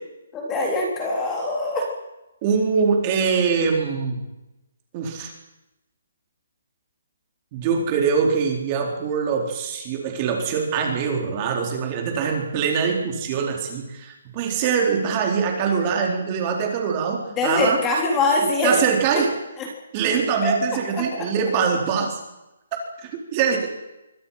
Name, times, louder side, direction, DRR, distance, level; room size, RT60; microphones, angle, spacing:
voice 1, 0.3-1.9 17.4-18.8 19.1-19.2 19.6-19.7 20.4-20.5 20.9-21.3, left 2 dB, 10° left, 0 dB, 3.7 m, -23 dB
voice 2, 2.4-4.3 4.9-5.3 7.5-17.8 18.6-19.3 19.9-22.2 23.0-23.7, right 6 dB, 20° right, 1 dB, 4.3 m, -23 dB
26.0 x 24.5 x 5.8 m, 0.96 s
hypercardioid pair, 170°, 0 cm